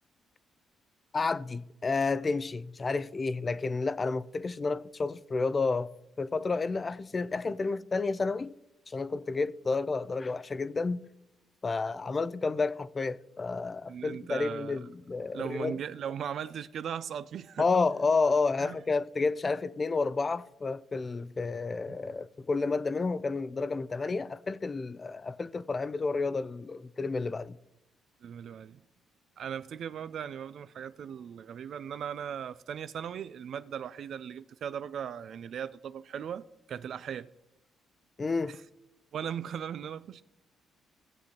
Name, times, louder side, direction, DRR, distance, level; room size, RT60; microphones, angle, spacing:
voice 1, 1.1-5.9 6.2-8.5 8.9-11.1 11.6-15.8 17.6-27.6 38.2-38.6, left 4 dB, 30° left, 0.4 m, -30 dB
voice 2, 13.9-14.8 15.3-17.7 18.6-18.8 21.9-22.0 28.2-28.8 29.4-37.3 39.1-40.2, right 8 dB, 65° right, 0.3 m, -38 dB
16.5 x 7.7 x 2.9 m
cardioid pair, 90°, 0 cm